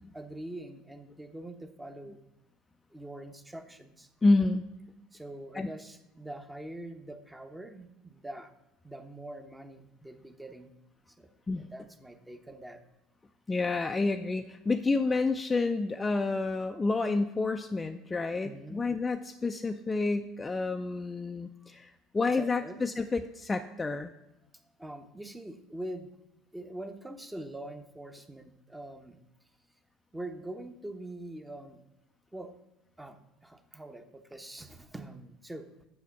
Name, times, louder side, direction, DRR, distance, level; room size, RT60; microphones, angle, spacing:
voice 1, 0.1-2.2 2.9-4.1 5.1-8.5 8.8-10.7 11.2-11.3 11.6-12.8 18.4-18.8 22.4-22.8 24.8-26.1 26.5-29.3 30.1-31.8 32.3-32.5 33.0-35.9, right 1 dB, 10° right, 7 dB, 0.9 m, -44 dB
voice 2, 4.2-4.6 5.5-5.7 11.5-11.7 13.5-24.1, left 3 dB, 20° left, 6 dB, 0.5 m, -29 dB
8.1 x 6.5 x 5.9 m, 0.92 s
figure-of-eight pair, 65°, 0 cm